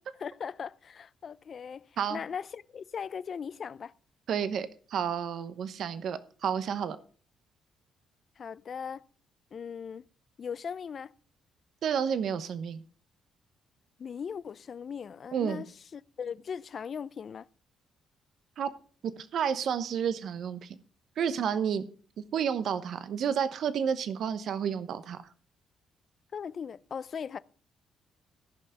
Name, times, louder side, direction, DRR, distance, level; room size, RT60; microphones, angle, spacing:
voice 1, 0.2-3.9 8.4-9.0 9.5-10.1 10.4-11.1 14.0-17.5 26.3-27.4, left 7 dB, 50° left, 0.5 m, -39 dB
voice 2, 4.3-7.0 11.8-12.8 15.3-15.6 18.6-18.7 19.3-20.7 21.2-21.8 22.3-25.2, right 7 dB, 65° right, 0.9 m, -30 dB
14.5 x 5.7 x 6.4 m
cardioid pair, 90°, 0 cm